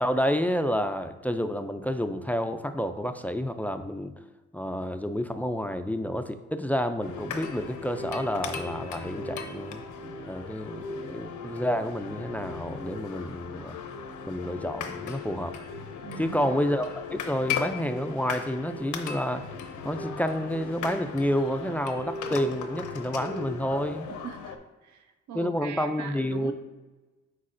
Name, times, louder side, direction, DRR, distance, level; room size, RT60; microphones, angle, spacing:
voice 1, 0.0-4.1 4.5-9.8 10.3-13.7 14.3-15.5 16.2-19.4 19.8-24.1 25.3-26.5, equal, 5° left, 8 dB, 0.3 m, -29 dB
sound 1, 7.0-24.6, left 5 dB, 75° left, 0.7 m, -37 dB
voice 2, 16.0-16.5 24.2-26.5, right 8 dB, 70° right, 6 dB, 0.8 m, -41 dB
8.2 x 4.6 x 2.5 m, 1.2 s
cardioid pair, 90°, 30 cm